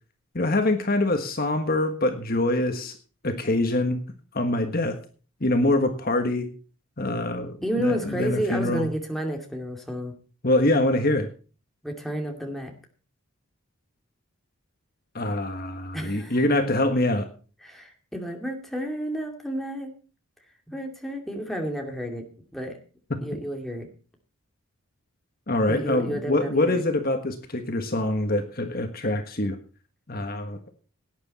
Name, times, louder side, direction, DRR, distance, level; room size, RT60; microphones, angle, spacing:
voice 1, 0.3-3.0 3.2-4.0 4.3-5.0 5.4-6.5 7.0-8.9 10.4-11.3 15.1-17.3 25.5-29.6 30.1-30.6, left 1 dB, 40° left, 6 dB, 1.4 m, -24 dB
voice 2, 7.6-10.1 11.8-12.7 15.9-16.4 17.6-19.9 20.7-22.2 22.5-22.8 23.2-23.9 25.7-26.8, equal, ahead, 2 dB, 2.5 m, -31 dB
17.5 x 9.8 x 4.2 m, 0.37 s
head